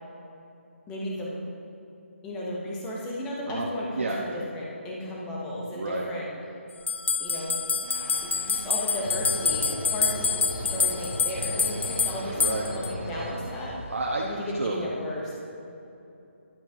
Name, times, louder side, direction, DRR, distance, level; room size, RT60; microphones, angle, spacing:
voice 1, 0.9-1.4 2.2-6.3 7.2-7.6 8.2-13.8 14.2-15.3, left 1 dB, 5° left, -4 dB, 0.5 m, -34 dB
voice 2, 5.7-6.1 12.3-12.7 13.9-14.9, right 2 dB, 70° right, -3 dB, 0.8 m, -30 dB
sound 1, 6.9-12.9, left 5 dB, 60° left, 0.3 m, -27 dB
sound 2, 7.8-13.6, right 2 dB, 10° right, 1.1 m, -45 dB
sound 3, 9.0-14.2, left 1 dB, 25° left, 1.3 m, -36 dB
10.5 x 7.5 x 2.6 m, 2.9 s
hypercardioid pair, 175°, 7 cm